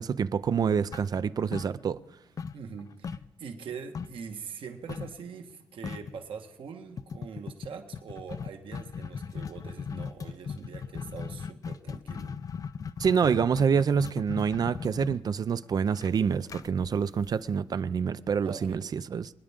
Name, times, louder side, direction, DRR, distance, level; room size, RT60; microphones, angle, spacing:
voice 1, 0.0-2.0 13.0-19.3, right 6 dB, 45° right, 0.5 m, -27 dB
sound 1, 0.9-2.1 2.4-4.3 4.9-5.2 5.5-5.6 5.8-6.2 7.0-17.8, left 6 dB, 40° left, 0.4 m, -38 dB
voice 2, 2.5-12.3 18.4-18.8, right 6 dB, 65° right, 1.5 m, -43 dB
26.5 x 10.0 x 3.7 m
wide cardioid pair, 140°, 9 cm